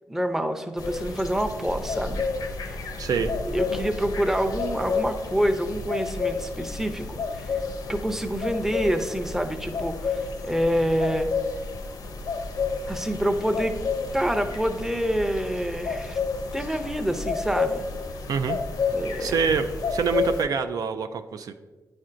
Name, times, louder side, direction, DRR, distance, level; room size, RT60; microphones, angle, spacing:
voice 1, 0.1-2.2 2.6-2.8 3.5-7.6 7.9-11.3 12.9-13.8 14.1-16.2 16.5-17.8 18.9-19.4, equal, 5° right, 6 dB, 0.6 m, -27 dB
sound 1, 0.8-20.4, left 4 dB, 80° left, 0.6 m, -31 dB
voice 2, 3.0-3.3 18.3-18.6 19.2-21.5, right 6 dB, 75° right, 8 dB, 0.3 m, -26 dB
9.2 x 4.3 x 2.5 m, 1.3 s
cardioid pair, 75°, 6 cm